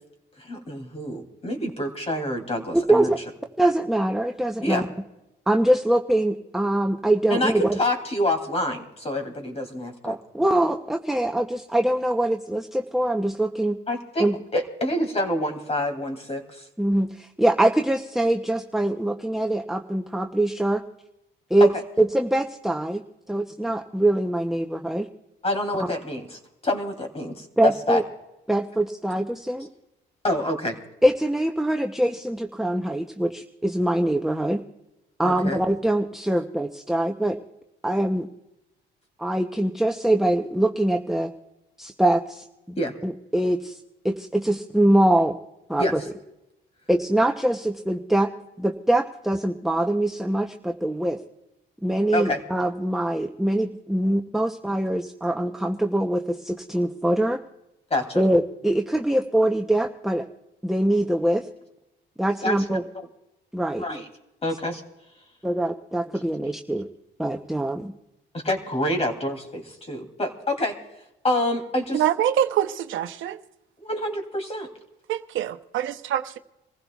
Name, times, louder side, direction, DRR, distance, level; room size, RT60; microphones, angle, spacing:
voice 1, 0.4-3.1 4.6-4.8 7.3-10.2 13.9-16.7 21.6-21.7 25.4-28.0 30.2-30.8 35.3-35.6 42.8-42.9 45.8-45.9 52.1-52.4 57.9-58.2 62.4-63.1 63.8-64.0 64.4-64.8 68.4-70.8 71.2-72.0 73.8-74.7, left 1 dB, 30° left, 2.7 m, -27 dB
voice 2, 2.7-3.2 3.6-4.9 5.5-7.8 10.0-13.8 14.2-14.4 16.8-20.8 21.5-21.7 22.0-23.0 23.3-25.1 27.6-28.0 28.5-29.7 31.0-34.6 35.2-37.4 37.8-38.3 39.2-41.3 41.8-45.4 45.7-46.0 46.9-48.3 48.6-51.2 51.8-57.4 58.2-60.3 60.6-61.5 62.2-62.8 63.5-63.9 65.4-66.9 67.2-67.9, right 1 dB, ahead, 0.7 m, -23 dB
voice 3, 71.9-73.4 75.1-76.4, right 10 dB, 80° right, 0.8 m, -25 dB
27.0 x 15.5 x 2.3 m
cardioid pair, 90°, 20 cm